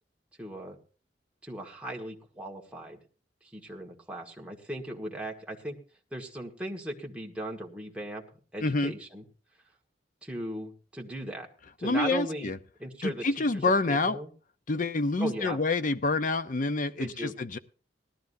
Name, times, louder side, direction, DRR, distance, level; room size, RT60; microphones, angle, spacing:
voice 1, 0.4-0.8 1.4-3.0 3.4-5.8 6.1-8.2 8.5-9.2 10.2-11.5 11.8-12.5 12.8-14.3 15.2-15.6 17.0-17.3, right 1 dB, 5° right, -1 dB, 1.7 m, -38 dB
voice 2, 8.6-8.9 11.8-12.6 13.0-14.2 14.7-17.6, left 3 dB, 45° left, 11 dB, 0.7 m, -27 dB
19.0 x 13.0 x 2.7 m, 0.38 s
head